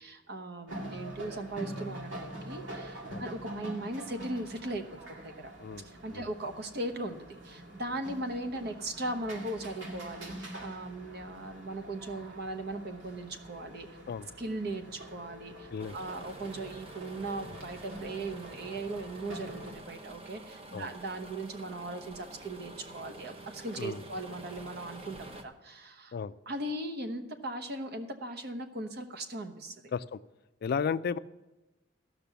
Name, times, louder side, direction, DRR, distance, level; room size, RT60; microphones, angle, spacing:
voice 1, 0.0-4.8 5.2-5.5 5.8-13.9 14.4-26.2 26.5-29.9, right 2 dB, 60° right, 7 dB, 1.0 m, -38 dB
sound 1, 0.7-19.7, right 1 dB, 85° right, 2.0 m, -45 dB
voice 2, 5.6-6.3 14.1-14.3 15.7-16.0 20.7-20.9 23.8-24.0 26.1-26.3 29.9-30.2 30.6-31.2, left 6 dB, 55° left, 15 dB, 0.3 m, -34 dB
sound 2, 15.8-25.4, right 2 dB, 30° right, 0.9 m, -48 dB
14.0 x 6.0 x 6.9 m, 1.1 s
head